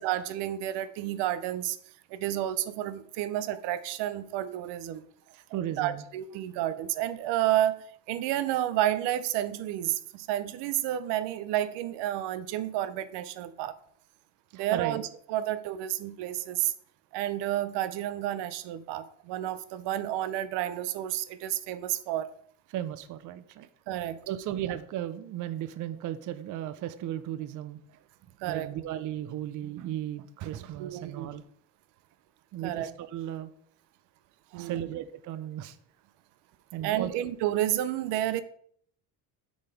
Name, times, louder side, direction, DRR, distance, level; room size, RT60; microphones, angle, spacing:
voice 1, 0.0-1.8 2.1-5.1 5.8-13.7 14.5-16.7 17.1-22.3 23.9-24.2 28.4-28.7 30.8-31.3 32.6-32.9 34.5-34.9 36.8-38.4, right 13 dB, 90° right, 14 dB, 0.7 m, -30 dB
voice 2, 5.3-6.0 14.5-15.0 22.7-23.7 24.3-28.0 28.4-31.4 32.5-33.5 34.5-35.8 36.7-37.1, right 12 dB, 45° right, 13 dB, 0.6 m, -35 dB
7.0 x 3.9 x 5.1 m, 0.62 s
cardioid pair, 140°, 41 cm